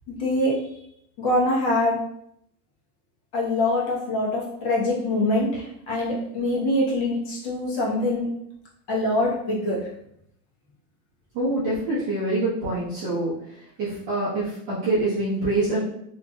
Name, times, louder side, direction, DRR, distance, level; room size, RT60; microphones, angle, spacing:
voice 1, 0.1-0.6 1.2-2.0 3.3-8.3 8.9-9.8, left 1 dB, 45° left, -5 dB, 1.1 m, -24 dB
voice 2, 11.3-13.3 13.8-15.8, right 2 dB, 25° right, -11 dB, 0.7 m, -25 dB
3.0 x 2.8 x 2.3 m, 0.73 s
supercardioid pair, 180°, 46 cm